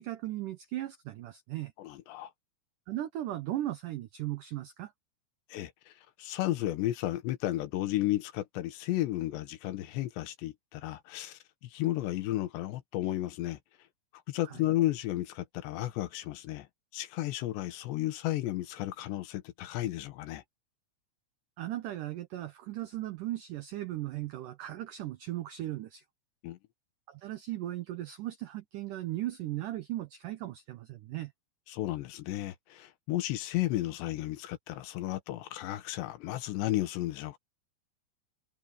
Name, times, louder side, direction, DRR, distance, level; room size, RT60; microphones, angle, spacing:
voice 1, 0.0-1.7 2.9-4.9 14.4-14.6 21.6-26.0 27.1-31.3, right 14 dB, 90° right, 1.8 m, -37 dB
voice 2, 1.8-2.3 5.5-5.9 6.2-13.6 14.3-16.7 16.9-20.4 26.4-26.6 31.7-37.4, left 15 dB, 85° left, 3.4 m, -33 dB
omnidirectional pair, 4.9 m